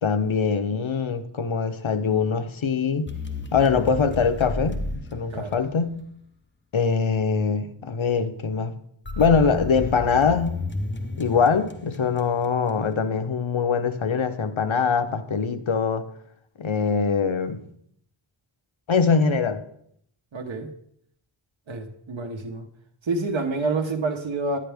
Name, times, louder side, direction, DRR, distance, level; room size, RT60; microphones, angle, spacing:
voice 1, 0.0-3.1 3.5-6.0 6.7-8.7 9.2-10.6 11.2-16.0 16.6-17.6 18.9-19.6, left 5 dB, 80° left, 0.8 m, -23 dB
sound 1, 3.1-6.0 9.0-12.5, left 2 dB, 25° left, 0.8 m, -32 dB
voice 2, 20.3-20.7 21.7-22.7 23.0-24.6, right 3 dB, 75° right, 1.0 m, -28 dB
9.9 x 9.8 x 3.4 m
wide cardioid pair, 60°, 47 cm